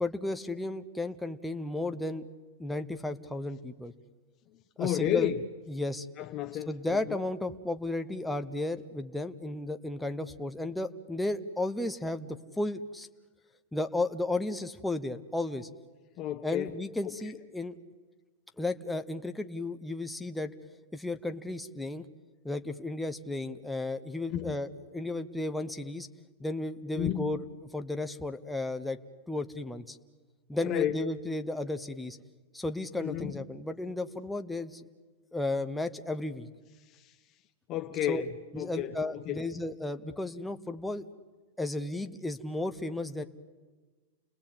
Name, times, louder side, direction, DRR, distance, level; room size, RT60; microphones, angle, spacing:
voice 1, 0.0-2.3 2.6-3.9 4.8-5.3 5.7-6.1 6.7-13.1 13.7-15.7 16.4-17.7 18.6-20.5 20.9-22.0 22.4-26.1 26.4-27.4 27.7-29.0 29.3-30.0 30.5-32.2 32.5-34.8 35.3-36.5 38.1-38.2 38.5-41.1 41.6-43.2, left 2 dB, 5° left, 6 dB, 0.8 m, -34 dB
voice 2, 4.8-5.4 6.2-7.2 16.2-16.8 24.3-24.6 27.0-27.3 30.6-31.1 33.0-33.4 36.9-37.1 37.7-39.4, left 11 dB, 30° left, 6 dB, 0.9 m, -32 dB
29.5 x 20.0 x 8.8 m, 1.3 s
supercardioid pair, 160°, 0 cm